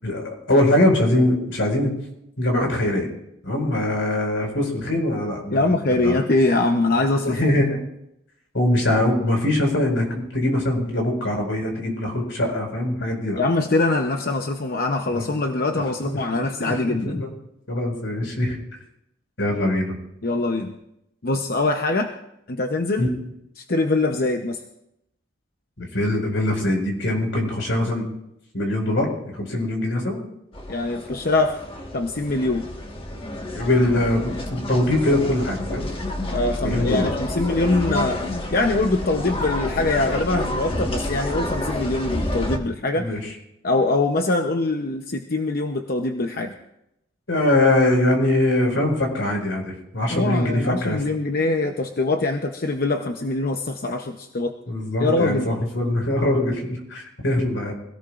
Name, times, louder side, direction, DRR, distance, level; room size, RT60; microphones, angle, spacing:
voice 1, 0.0-1.9 2.4-3.1 3.4-6.2 7.2-7.8 8.5-13.4 15.1-15.2 15.7-17.3 17.7-18.6 19.4-19.9 23.0-23.1 25.8-28.1 28.5-30.2 33.5-35.9 36.6-37.1 43.0-43.3 47.3-51.0 54.7-57.7, left 1 dB, 80° left, 1 dB, 5.0 m, -22 dB
voice 2, 5.5-7.4 13.4-17.2 20.2-20.7 21.2-22.1 22.5-23.0 23.6-24.6 30.7-31.6 31.9-32.7 36.3-38.2 38.5-43.1 43.6-46.5 50.1-54.6 55.0-55.5, left 2 dB, 50° left, 4 dB, 0.8 m, -23 dB
sound 1, 30.5-42.6, left 1 dB, 30° left, 1.5 m, -29 dB
25.0 x 17.5 x 2.5 m, 0.83 s
head